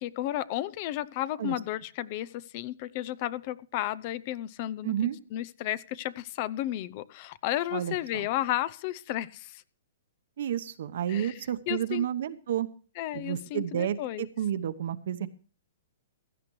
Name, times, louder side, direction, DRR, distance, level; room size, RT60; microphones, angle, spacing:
voice 1, 0.0-4.9 5.3-9.6 11.1-11.3 11.7-12.1 13.0-14.3, left 14 dB, 40° left, 0.6 m, -33 dB
voice 2, 4.8-5.2 7.7-8.3 10.4-12.7 13.1-15.3, right 10 dB, 65° right, 1.0 m, -31 dB
16.5 x 12.5 x 3.2 m
hypercardioid pair, 150°, 0 cm